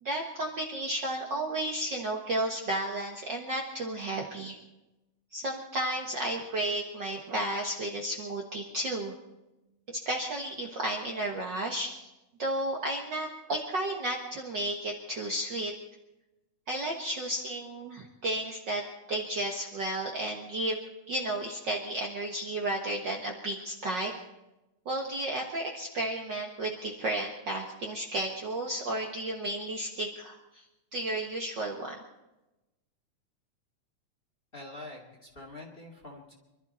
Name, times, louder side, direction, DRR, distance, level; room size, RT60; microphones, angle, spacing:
voice 1, 0.0-4.6 5.3-9.1 10.0-12.1 12.4-15.7 16.7-18.8 19.1-20.8 21.1-24.1 24.8-30.6 30.9-32.0, right 1 dB, 50° right, 0 dB, 1.6 m, -33 dB
voice 2, 34.5-36.3, left 2 dB, 20° left, 1 dB, 2.0 m, -45 dB
25.5 x 12.5 x 4.2 m, 0.99 s
omnidirectional pair, 3.3 m